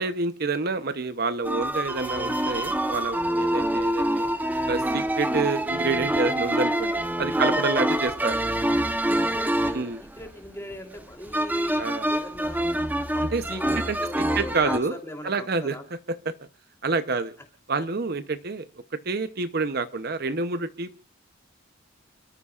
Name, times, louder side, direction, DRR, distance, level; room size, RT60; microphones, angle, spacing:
voice 1, 0.0-4.3 4.7-8.4 9.7-10.0 11.8-12.1 13.3-15.0 15.2-16.3 16.8-17.3 17.7-18.7 19.0-21.0, right 3 dB, 50° right, 11 dB, 0.8 m, -28 dB
sound 1, 1.5-14.8, right 1 dB, 10° right, 0.9 m, -26 dB
voice 2, 7.3-8.0 9.1-12.7 13.1-15.8 17.1-17.2, left 1 dB, 15° left, 3 dB, 3.3 m, -40 dB
28.5 x 14.0 x 2.4 m, 0.35 s
head